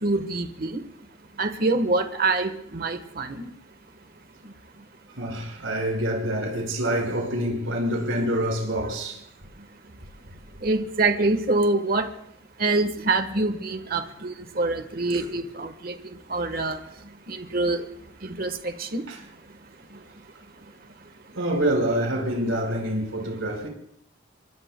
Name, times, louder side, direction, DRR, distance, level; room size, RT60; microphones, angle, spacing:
voice 1, 0.0-0.8 1.4-3.5 10.6-12.1 12.6-15.9 16.3-16.8 17.3-17.8 18.4-19.0, right 2 dB, 45° right, 1.2 m, -25 dB
voice 2, 5.2-9.2 15.1-15.3 19.1-19.2 21.3-23.7, right 1 dB, 80° right, 4.9 m, -26 dB
25.5 x 23.5 x 2.2 m
head